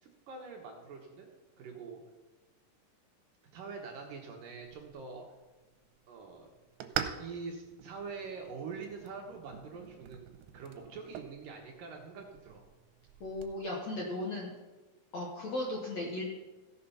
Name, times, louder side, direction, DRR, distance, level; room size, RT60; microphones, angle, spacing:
voice 1, 0.0-1.3 1.6-2.0 3.5-5.2 6.1-6.5 7.2-12.6, right 4 dB, 65° right, 1 dB, 2.4 m, -44 dB
sound 1, 4.6-13.6, right 10 dB, 85° right, 3.0 m, -45 dB
voice 2, 13.2-14.5 15.1-16.2, left 1 dB, 60° left, -2 dB, 1.8 m, -36 dB
15.5 x 6.8 x 5.7 m, 1.2 s
omnidirectional pair, 4.9 m